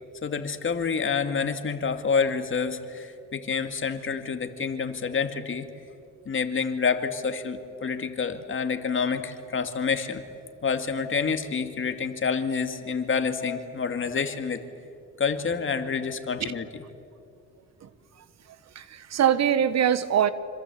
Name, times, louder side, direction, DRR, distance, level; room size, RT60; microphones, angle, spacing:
voice 1, 0.2-5.7 6.3-10.2 10.6-14.6 15.2-16.7, left 5 dB, 40° left, 7 dB, 2.4 m, -28 dB
voice 2, 18.7-20.3, right 9 dB, 60° right, 14 dB, 1.3 m, -23 dB
26.0 x 26.0 x 8.5 m, 2.5 s
cardioid pair, 90°, 30 cm